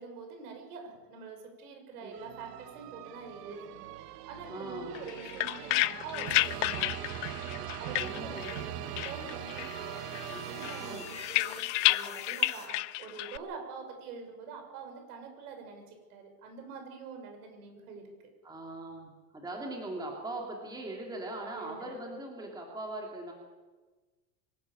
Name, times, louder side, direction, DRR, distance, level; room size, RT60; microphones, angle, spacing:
voice 1, 0.0-7.0 7.8-10.2 10.5-18.0 21.5-21.9, right 5 dB, 70° right, 4 dB, 6.4 m, -45 dB
sound 1, 2.1-11.6, right 12 dB, 90° right, 1.2 m, -41 dB
voice 2, 4.5-5.0 8.0-8.6 10.3-10.4 10.8-11.0 18.4-23.3, right 2 dB, 10° right, 0 dB, 2.8 m, -40 dB
sound 2, 4.9-8.7 9.0-9.8 10.1-13.4, left 20 dB, 50° left, 0.7 m, -31 dB
sound 3, 7.9-12.7, left 5 dB, 15° left, 2.2 m, -49 dB
24.5 x 12.5 x 8.6 m, 1.3 s
supercardioid pair, 165°, 46 cm